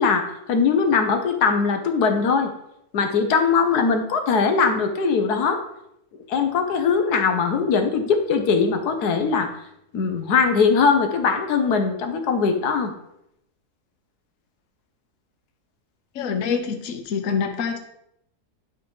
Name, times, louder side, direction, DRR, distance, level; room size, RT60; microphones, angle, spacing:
voice 1, 0.0-2.5 2.9-5.6 6.3-9.5 9.9-12.9, left 5 dB, 80° left, 6 dB, 1.4 m, -21 dB
voice 2, 16.1-17.8, left 6 dB, 60° left, 6 dB, 1.1 m, -26 dB
11.0 x 3.7 x 4.7 m, 0.78 s
omnidirectional pair, 1.6 m